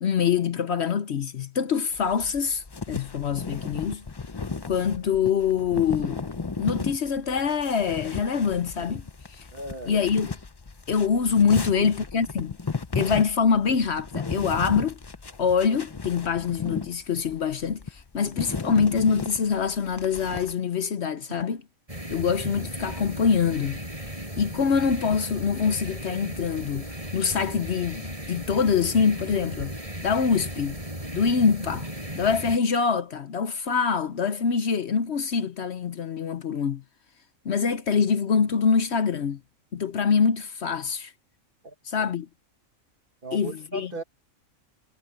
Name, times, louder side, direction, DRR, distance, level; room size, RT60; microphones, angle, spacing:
voice 1, 0.0-4.0 4.7-6.2 6.6-9.4 9.9-10.3 10.9-12.6 12.9-15.0 15.4-21.6 22.1-23.8 24.4-26.9 27.1-29.7 30.0-30.8 31.1-31.9 32.1-36.8 37.4-39.4 39.7-41.1 41.8-42.3 43.3-43.9, left 6 dB, 55° left, 1.0 m, -25 dB
sound 1, 1.9-20.5, left 4 dB, 30° left, 0.5 m, -35 dB
voice 2, 9.5-10.0 11.7-11.9 41.6-42.1 43.2-44.0, right 3 dB, 40° right, 1.5 m, -37 dB
sound 2, 21.9-32.6, right 1 dB, 25° right, 7.3 m, -36 dB
omnidirectional pair, 1.4 m